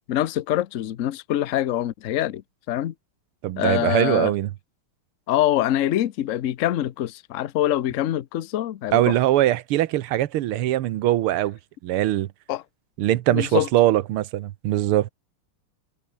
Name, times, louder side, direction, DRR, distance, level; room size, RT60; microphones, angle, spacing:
voice 1, 0.1-2.4 2.7-2.9 3.6-4.3 5.3-9.2 12.5-12.6 13.3-13.7, left 12 dB, 70° left, 0.7 m, -24 dB
voice 2, 3.4-4.5 8.9-12.3 13.0-15.1, right 14 dB, 80° right, 1.7 m, -22 dB
omnidirectional pair, 2.4 m